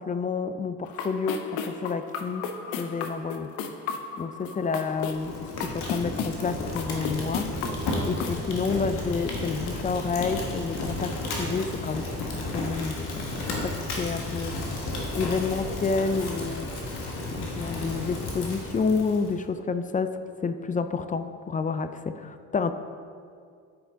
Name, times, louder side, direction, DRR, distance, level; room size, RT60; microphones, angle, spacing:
voice 1, 0.0-2.4 2.7-3.5 4.2-7.6 8.1-14.5 15.1-16.9 17.4-20.1 20.4-22.7, left 5 dB, 20° left, 10 dB, 0.3 m, -29 dB
sound 1, 0.8-8.4, left 6 dB, 90° left, 0.6 m, -35 dB
Fire, 4.9-19.3, left 2 dB, 65° left, 1.5 m, -33 dB
8.8 x 4.9 x 3.6 m, 2.3 s
supercardioid pair, 60°, 41 cm